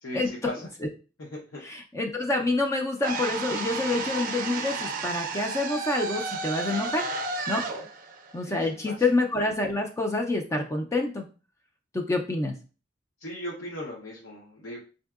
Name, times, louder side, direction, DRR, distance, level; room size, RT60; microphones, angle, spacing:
voice 1, 0.0-0.7 1.2-1.6 8.4-9.0 13.2-14.8, left 1 dB, 80° left, -4 dB, 0.7 m, -38 dB
voice 2, 1.6-7.1 7.5-7.6 8.3-11.3 11.9-12.5, left 2 dB, 15° left, 2 dB, 0.3 m, -27 dB
sound 1, 3.0-9.1, right 4 dB, 45° right, 0.5 m, -33 dB
4.3 x 2.6 x 2.3 m, 0.35 s
head